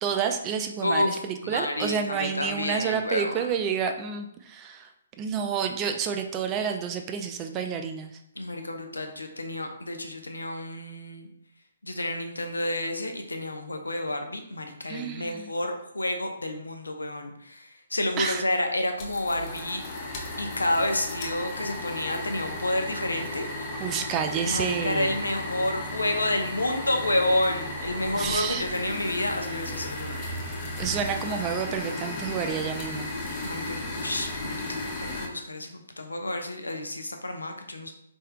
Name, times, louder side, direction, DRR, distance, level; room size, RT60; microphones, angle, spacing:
voice 1, 0.0-4.9 5.2-8.1 14.9-15.5 18.2-18.5 23.8-25.1 28.1-28.7 30.8-33.1, right 7 dB, 20° right, 5 dB, 0.3 m, -29 dB
voice 2, 0.8-3.4 8.4-11.3 11.8-19.8 20.4-23.7 24.4-30.2 33.4-37.9, left 1 dB, 75° left, 4 dB, 0.6 m, -30 dB
sound 1, 19.0-35.3, left 1 dB, 25° left, 0.7 m, -35 dB
4.3 x 3.5 x 2.2 m, 0.75 s
figure-of-eight pair, 130°, 0 cm